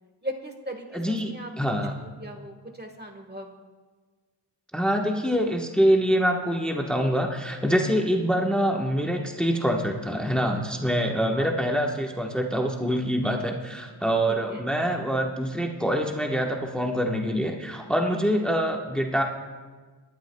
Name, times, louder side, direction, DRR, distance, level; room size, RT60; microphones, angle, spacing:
voice 1, 0.2-1.7 2.2-3.5 14.3-14.6, equal, 25° right, 4 dB, 1.4 m, -38 dB
voice 2, 0.9-2.0 4.7-19.2, equal, ahead, 1 dB, 1.1 m, -25 dB
22.5 x 11.5 x 2.3 m, 1.4 s
wide cardioid pair, 65°, 43 cm